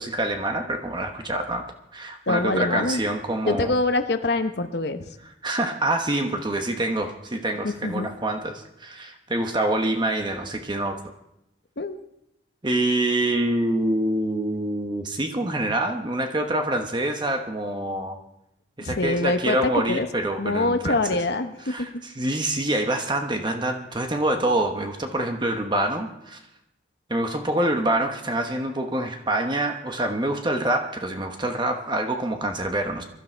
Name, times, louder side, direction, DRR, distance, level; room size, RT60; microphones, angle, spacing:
voice 1, 0.0-1.7 1.9-3.7 5.4-11.0 12.6-18.2 18.8-21.0 21.7-26.4 27.1-33.0, right 1 dB, 25° right, 5 dB, 1.1 m, -26 dB
voice 2, 2.3-3.0 3.5-5.2 7.6-8.1 11.8-12.0 18.8-20.1 20.4-21.9, left 2 dB, 60° left, 8 dB, 0.9 m, -25 dB
22.5 x 12.5 x 4.5 m, 0.82 s
head